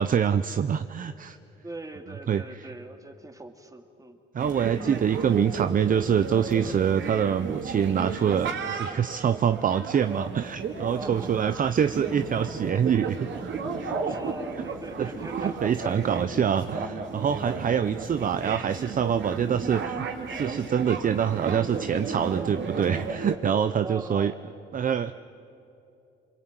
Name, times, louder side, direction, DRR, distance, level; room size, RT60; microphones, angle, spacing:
voice 1, 0.0-1.4 2.3-2.4 4.3-13.3 13.8-13.9 15.0-15.1 15.4-24.3 24.7-25.1, right 8 dB, 45° right, 11 dB, 0.7 m, -25 dB
voice 2, 1.6-4.2 10.9-11.4 14.0-16.5 17.6-17.9 23.8-24.4, right 2 dB, 15° right, 5 dB, 2.4 m, -41 dB
sound 1, 4.4-23.3, right 5 dB, 70° right, 3.6 m, -33 dB
28.5 x 22.5 x 9.0 m, 2.8 s
cardioid pair, 90°, 20 cm